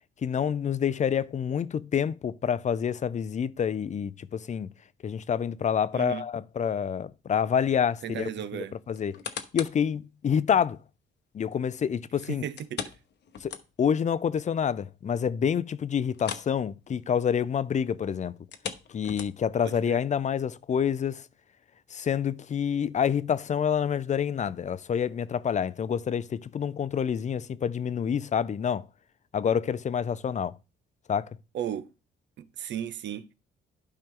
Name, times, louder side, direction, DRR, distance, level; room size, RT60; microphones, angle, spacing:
voice 1, 0.2-4.7 5.0-9.2 9.5-10.8 11.3-12.5 13.4-18.4 18.9-21.2 21.9-28.8 29.3-30.6 31.1-31.3, left 8 dB, 35° left, 0.5 m, -27 dB
voice 2, 5.9-6.2 8.0-8.7 12.3-12.9 19.6-20.0 31.5-31.9 32.4-33.3, right 10 dB, 65° right, 0.7 m, -35 dB
sound 1, 8.9-9.9 10.4-10.5 12.6-14.0 14.4-14.5 14.9-15.0 16.1-16.6 16.8-17.1 18.4-19.6 20.2-20.3, left 7 dB, 60° left, 1.0 m, -39 dB
12.0 x 4.5 x 3.7 m
cardioid pair, 90°, 20 cm